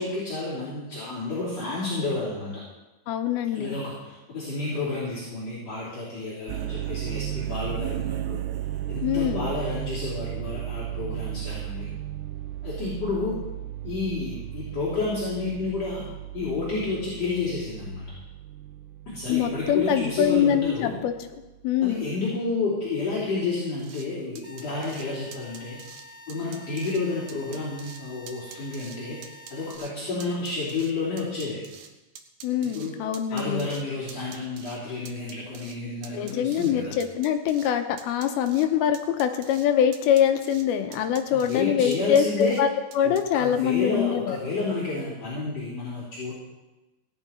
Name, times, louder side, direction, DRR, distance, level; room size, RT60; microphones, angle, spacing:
voice 1, 0.0-2.6 3.5-8.4 8.9-11.9 12.6-13.4 13.8-16.0 16.3-18.1 19.1-20.9 21.8-25.8 26.3-31.6 32.6-33.0 33.3-37.0 41.3-42.6 43.0-46.3, left 3 dB, 45° left, -9 dB, 4.3 m, -30 dB
voice 2, 3.1-3.8 9.0-9.5 19.3-21.1 21.6-22.1 32.4-33.7 36.1-44.4, left 9 dB, 85° left, 6 dB, 2.8 m, -24 dB
sound 1, 6.5-21.6, right 13 dB, 85° right, 1.9 m, -35 dB
sound 2, 23.8-24.1 24.4-25.1 25.3-26.0 26.3-27.0 27.3-28.0 28.3-29.0 29.2-29.9 30.2-31.9 32.2-33.8 34.1-34.8 35.1-35.8 36.0-36.7 37.0-37.7 38.0-38.7 38.9-39.7 39.9-40.6 40.9-41.6 41.9-42.6 42.9-43.2, right 8 dB, 70° right, 1.9 m, -45 dB
sound 3, 24.4-29.7, left 2 dB, 15° left, 0.6 m, -48 dB
17.5 x 11.0 x 4.4 m, 1.1 s
omnidirectional pair, 4.4 m